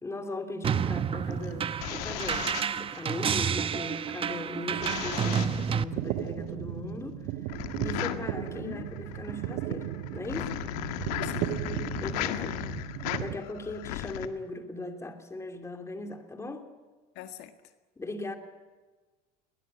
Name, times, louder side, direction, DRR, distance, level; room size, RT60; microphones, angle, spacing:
voice 1, 0.0-7.3 7.8-10.5 12.0-12.5 13.2-16.7 18.0-18.3, left 2 dB, 15° left, 6 dB, 2.9 m, -38 dB
sound 1, 0.6-5.8, right 7 dB, 30° right, 0.9 m, -30 dB
sound 2, 1.3-3.4 4.8-5.7 7.5-14.3, left 13 dB, 90° left, 1.8 m, -36 dB
sound 3, 4.7-13.4, right 12 dB, 70° right, 1.4 m, -36 dB
voice 2, 8.0-8.9 11.2-11.7 12.1-12.6 17.2-17.7, left 10 dB, 65° left, 8 dB, 1.8 m, -43 dB
22.0 x 19.0 x 9.9 m, 1.3 s
cardioid pair, 125°, 19 cm